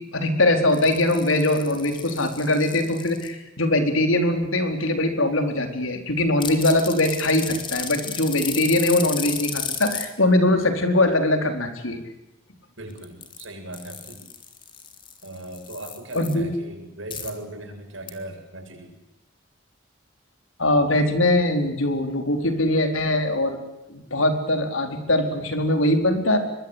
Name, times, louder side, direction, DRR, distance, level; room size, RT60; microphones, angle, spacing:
voice 1, 0.1-12.0 16.1-16.5 20.6-23.6 23.9-26.4, left 1 dB, 80° left, 6 dB, 4.4 m, -21 dB
sound 1, 0.7-3.3 6.4-10.1 12.9-13.5 13.7-16.4 17.1-17.3 18.1-18.2, left 6 dB, 25° left, 2.9 m, -34 dB
voice 2, 12.8-14.2 15.2-19.0, right 1 dB, 70° right, 3 dB, 7.8 m, -38 dB
24.5 x 21.5 x 8.3 m, 0.97 s
head